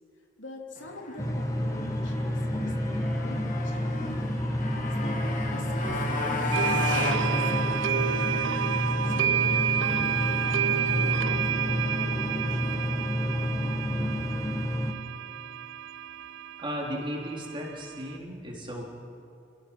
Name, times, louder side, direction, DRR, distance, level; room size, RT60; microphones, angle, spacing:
voice 1, 0.4-4.3 5.0-8.2 9.0-11.5 11.8-13.8, left 1 dB, 80° left, 1 dB, 3.1 m, -45 dB
Motorcycle, 0.8-12.9, left 2 dB, 45° left, 2.5 m, -36 dB
sound 1, 1.2-14.9, left 1 dB, 15° left, 1.3 m, -29 dB
sound 2, 6.5-18.1, right 9 dB, 80° right, 0.5 m, -30 dB
voice 2, 16.6-18.9, equal, 25° right, -2 dB, 3.8 m, -35 dB
28.0 x 16.5 x 6.1 m, 2.5 s
head